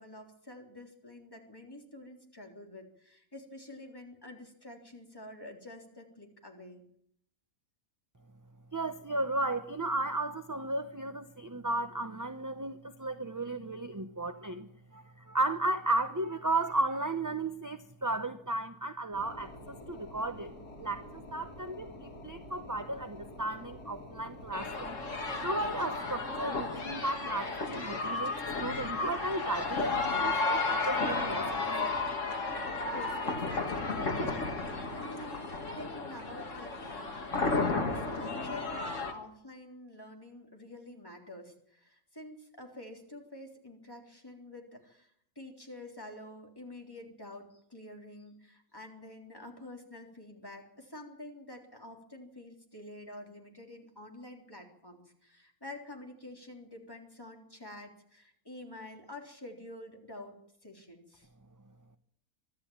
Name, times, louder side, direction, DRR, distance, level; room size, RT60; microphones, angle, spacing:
voice 1, 0.0-6.8 32.9-45.1 45.4-61.3, left 1 dB, 15° left, 1 dB, 3.6 m, -48 dB
voice 2, 8.7-14.7 14.9-20.5 20.8-25.0 25.4-31.6, right 2 dB, 15° right, 8 dB, 0.7 m, -34 dB
sound 1, 19.1-26.5, left 1 dB, 80° left, 3.6 m, -48 dB
sound 2, 24.5-39.1, left 3 dB, 50° left, 2.5 m, -33 dB
24.0 x 12.5 x 8.8 m, 0.69 s
omnidirectional pair, 1.6 m